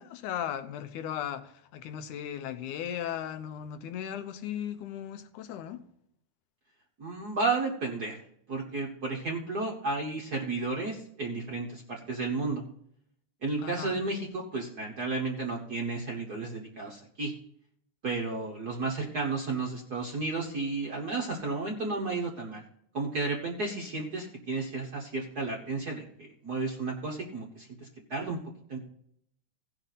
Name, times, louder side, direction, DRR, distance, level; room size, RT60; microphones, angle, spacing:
voice 1, 0.0-5.8 13.6-14.0, left 10 dB, 75° left, 2.3 m, -37 dB
voice 2, 7.0-8.2 8.5-12.6 13.4-17.3 18.0-22.6 22.9-27.7 28.1-28.4 28.7-28.8, right 3 dB, 55° right, 1.1 m, -32 dB
17.0 x 5.9 x 4.0 m
omnidirectional pair, 3.6 m